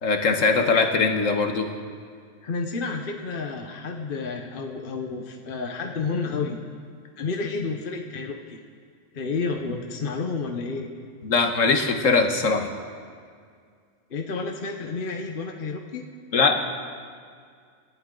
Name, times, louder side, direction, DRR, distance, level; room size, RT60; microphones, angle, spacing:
voice 1, 0.0-1.7 11.2-12.7 16.3-16.6, left 4 dB, 85° left, 5 dB, 1.7 m, -21 dB
voice 2, 2.4-6.6 7.2-8.6 9.1-10.9 14.1-16.0, left 4 dB, 45° left, 3 dB, 1.1 m, -30 dB
27.5 x 12.5 x 3.9 m, 2.1 s
omnidirectional pair, 1.3 m